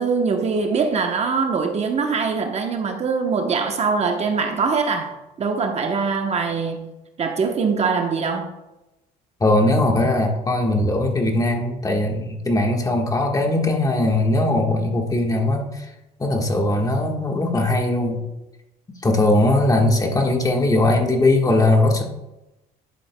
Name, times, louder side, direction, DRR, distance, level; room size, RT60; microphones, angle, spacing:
voice 1, 0.0-6.9 7.2-8.5, right 5 dB, 40° right, 0.9 m, -23 dB
voice 2, 9.4-15.9 16.2-18.2 19.0-22.0, left 2 dB, 20° left, 1.4 m, -20 dB
11.0 x 7.6 x 2.2 m
cardioid pair, 110°, 17 cm